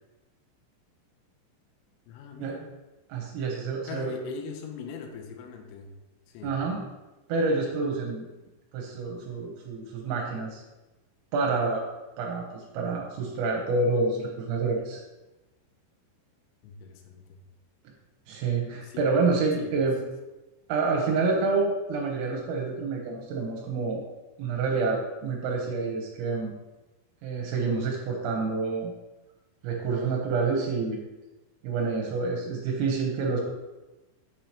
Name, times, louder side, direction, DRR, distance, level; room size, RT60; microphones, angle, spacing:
voice 1, 2.1-2.8 3.8-6.0 6.3-6.6 16.6-17.4 18.8-19.2 19.6-19.9, left 5 dB, 85° left, 3 dB, 3.3 m, -41 dB
voice 2, 3.1-4.1 6.4-6.8 7.3-8.3 8.7-10.6 11.3-11.8 12.2-15.0 18.3-20.0 20.7-24.0 24.4-26.5 27.2-28.9 29.6-31.0 31.6-33.4, right 4 dB, 80° right, -1 dB, 3.5 m, -28 dB
7.9 x 6.8 x 2.9 m, 1.1 s
omnidirectional pair, 5.9 m